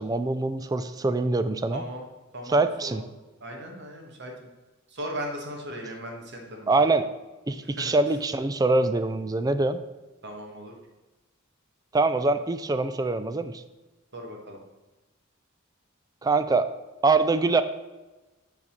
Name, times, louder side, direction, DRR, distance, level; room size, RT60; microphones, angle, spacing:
voice 1, 0.0-1.8 2.5-3.0 6.7-7.1 7.5-9.8 11.9-13.6 16.2-16.7 17.0-17.6, right 3 dB, 20° right, 11 dB, 0.3 m, -24 dB
voice 2, 1.7-2.0 2.3-3.0 3.4-4.5 4.9-6.9 7.6-7.9 10.2-10.7 14.1-14.6, equal, 55° right, 1 dB, 1.6 m, -38 dB
7.3 x 4.0 x 6.4 m, 1.1 s
head